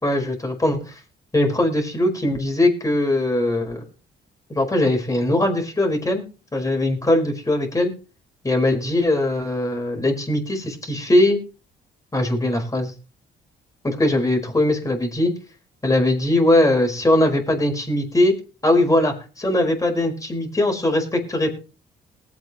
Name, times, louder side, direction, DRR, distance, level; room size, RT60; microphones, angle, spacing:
voice 1, 0.0-0.8 1.3-3.8 4.5-6.2 6.5-7.9 8.4-11.4 12.1-12.9 13.8-15.3 15.8-18.3 18.6-21.5, left 1 dB, 15° left, 3 dB, 4.7 m, -20 dB
20.0 x 8.4 x 3.1 m, 0.34 s
cardioid pair, 90°, 20 cm